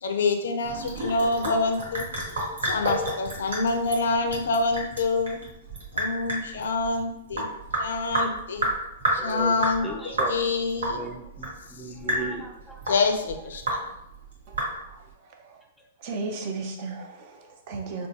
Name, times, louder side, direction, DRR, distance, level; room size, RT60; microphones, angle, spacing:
voice 1, 0.0-2.1 2.6-5.4 5.9-7.4 7.8-8.7 9.1-11.0 11.8-11.9 12.9-13.9, left 3 dB, 75° left, 5 dB, 0.5 m, -26 dB
Sink (filling or washing) / Drip, 0.6-15.1, right 1 dB, 85° right, 1.2 m, -31 dB
voice 2, 9.2-10.3 10.9-12.8, right 1 dB, ahead, 0 dB, 0.5 m, -36 dB
voice 3, 16.0-18.1, right 3 dB, 50° right, 4 dB, 0.6 m, -35 dB
3.7 x 2.3 x 2.7 m, 0.85 s
hypercardioid pair, 125°, 0 cm